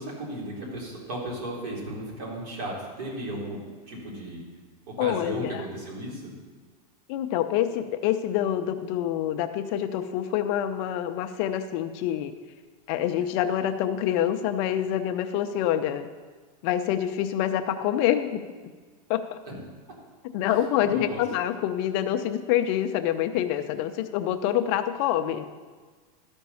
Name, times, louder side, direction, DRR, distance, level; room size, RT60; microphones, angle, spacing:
voice 1, 0.0-4.4 4.9-6.3 19.5-19.6 20.8-21.2, right 1 dB, 60° right, -3 dB, 3.9 m, -35 dB
voice 2, 5.0-5.6 7.1-12.3 12.9-16.1 16.6-18.4 19.1-19.4 20.3-25.5, left 11 dB, 40° left, 8 dB, 0.5 m, -26 dB
13.0 x 5.3 x 6.9 m, 1.4 s
supercardioid pair, 155°, 20 cm